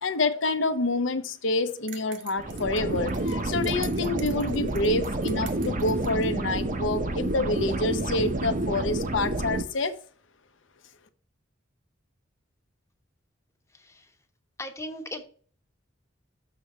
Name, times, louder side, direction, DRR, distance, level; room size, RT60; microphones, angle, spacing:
voice 1, 0.0-9.9, left 2 dB, 70° left, 10 dB, 0.8 m, -27 dB
sound 1, 1.9-6.3, right 8 dB, 70° right, 1.1 m, -46 dB
sound 2, 2.4-9.6, right 2 dB, 40° right, 0.8 m, -29 dB
voice 2, 13.7-14.2 14.6-15.2, left 1 dB, 15° left, 5 dB, 1.0 m, -38 dB
6.8 x 3.4 x 5.9 m, 0.43 s
head